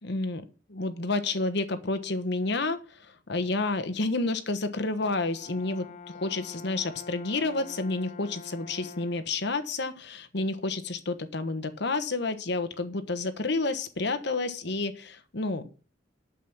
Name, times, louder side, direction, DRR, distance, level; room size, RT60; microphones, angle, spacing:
voice 1, 0.0-15.7, left 3 dB, 60° left, 10 dB, 1.2 m, -30 dB
Brass instrument, 5.0-9.4, left 5 dB, 40° left, 0.7 m, -46 dB
8.4 x 7.2 x 6.0 m, 0.36 s
head